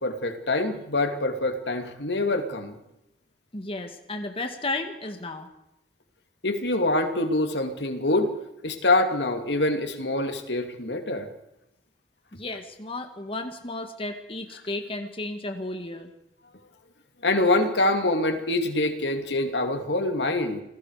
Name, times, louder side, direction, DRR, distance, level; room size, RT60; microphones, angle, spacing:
voice 1, 0.0-2.8 6.4-8.3 8.6-11.3 17.2-20.6, left 2 dB, 70° left, 6 dB, 2.9 m, -25 dB
voice 2, 3.5-5.5 12.3-16.1, left 2 dB, 30° left, 5 dB, 2.0 m, -33 dB
28.5 x 19.5 x 5.0 m, 0.87 s
head